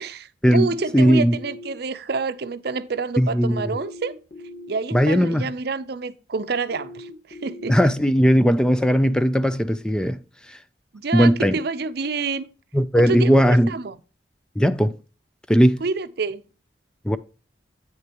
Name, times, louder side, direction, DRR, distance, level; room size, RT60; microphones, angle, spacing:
voice 1, 0.0-4.1 4.7-7.8 10.9-12.5 13.0-14.0 15.8-16.4, right 4 dB, 65° right, 0.6 m, -28 dB
sound 1, 0.7-1.7 3.7-4.7 6.7-7.7, left 1 dB, 55° left, 2.4 m, -40 dB
voice 2, 0.9-1.4 3.2-3.7 4.9-5.5 7.7-10.2 11.1-11.5 12.7-13.7 14.6-15.0 15.5-15.8 17.1-17.2, equal, 5° left, 0.4 m, -18 dB
8.7 x 6.5 x 2.9 m
head